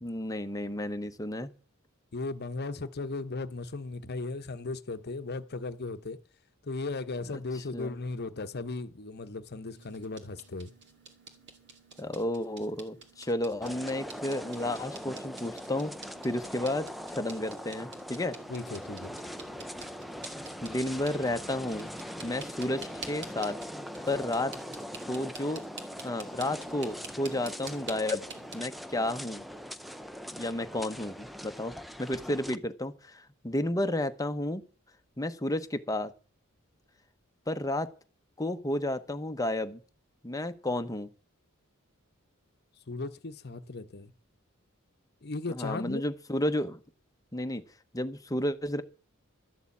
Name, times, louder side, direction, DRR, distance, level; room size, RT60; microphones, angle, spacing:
voice 1, 0.0-1.5 7.3-7.4 7.7-7.9 12.0-15.9 16.2-18.4 20.4-21.9 22.2-23.6 24.1-24.5 25.0-25.6 26.0-28.2 28.5-29.4 30.3-34.6 35.2-36.1 37.5-37.9 38.4-39.8 40.2-41.1 45.5-46.8 47.3-47.6 47.9-48.8, left 1 dB, 15° left, 0.9 m, -32 dB
voice 2, 2.1-6.2 6.6-10.7 18.5-19.2 42.9-44.1 45.2-46.0, left 3 dB, 50° left, 0.9 m, -36 dB
sound 1, 9.8-28.5, right 4 dB, 55° right, 2.3 m, -49 dB
sound 2, 13.6-32.6, equal, ahead, 0.5 m, -41 dB
13.0 x 6.9 x 8.4 m
head